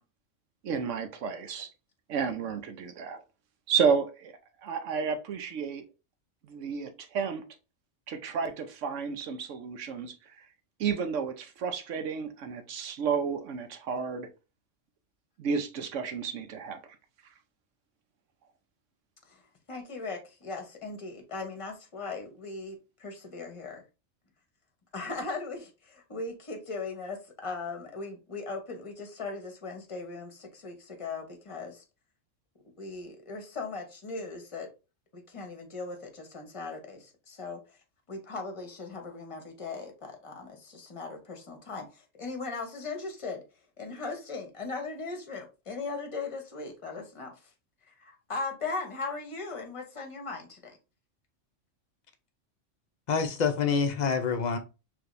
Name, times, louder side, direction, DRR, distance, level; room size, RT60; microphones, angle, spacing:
voice 1, 0.6-1.7 2.1-3.2 3.7-5.8 6.5-7.4 8.1-10.1 10.8-14.3 15.4-16.8, right 6 dB, 75° right, 1.1 m, -31 dB
voice 2, 19.7-23.8 24.9-31.8 32.8-34.7 35.1-37.8 38.1-43.4 43.8-47.5 47.9-50.7, left 3 dB, 30° left, 0.9 m, -38 dB
voice 3, 53.1-54.6, left 6 dB, 50° left, 0.6 m, -26 dB
4.9 x 3.3 x 2.5 m
omnidirectional pair, 1.3 m